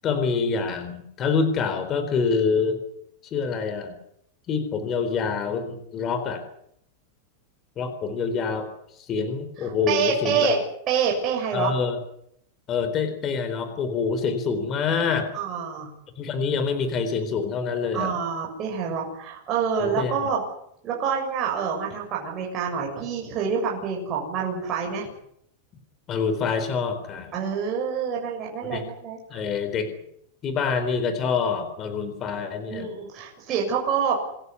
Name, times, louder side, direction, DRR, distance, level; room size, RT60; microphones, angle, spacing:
voice 1, 0.0-2.8 3.3-4.0 4.5-6.4 7.8-8.7 9.0-10.5 11.5-12.0 12.7-15.3 16.2-18.2 19.8-20.3 26.1-27.3 28.6-28.8 29.3-29.9 30.4-32.9, left 5 dB, 25° left, 9 dB, 4.0 m, -26 dB
voice 2, 9.6-11.7 15.3-15.9 17.9-20.4 20.8-25.1 27.3-29.4 32.7-34.2, right 6 dB, 30° right, -1 dB, 7.0 m, -27 dB
27.5 x 15.0 x 9.9 m, 0.73 s
supercardioid pair, 160°, 0 cm